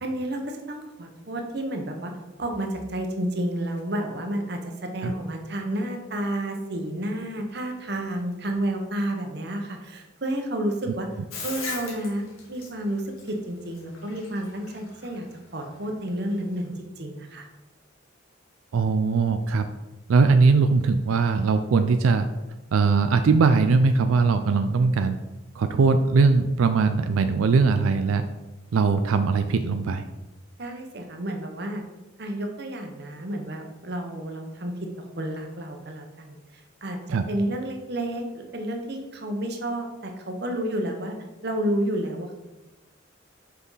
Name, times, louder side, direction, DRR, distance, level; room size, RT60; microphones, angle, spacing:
voice 1, 0.0-2.1 2.4-11.1 11.4-15.3 15.5-17.4 30.6-31.8 32.2-37.0 37.3-41.2 41.4-42.3, right 1 dB, 50° right, 4 dB, 0.9 m, -30 dB
Bathtub (filling or washing), 11.3-16.7, left 4 dB, 90° left, 1.6 m, -39 dB
voice 2, 18.7-19.7 20.1-22.3 22.7-25.2 25.5-28.3 28.7-30.0 37.1-37.2, right 4 dB, 90° right, 9 dB, 0.4 m, -20 dB
6.0 x 5.5 x 4.0 m, 1.0 s
head